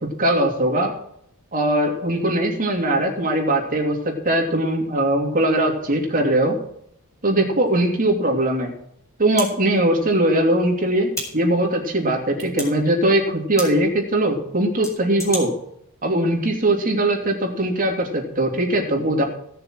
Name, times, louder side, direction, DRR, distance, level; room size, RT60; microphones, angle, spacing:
voice 1, 0.2-0.9 1.5-6.5 7.2-8.7 9.2-15.5 16.0-19.2, right 1 dB, 40° right, 1 dB, 3.0 m, -20 dB
sound 1, 7.7-7.8 9.3-9.5 11.1-11.3 12.4-12.7 13.6-13.7 14.8-15.4, left 1 dB, 15° left, 4.5 m, -29 dB
17.0 x 6.7 x 6.2 m, 0.71 s
head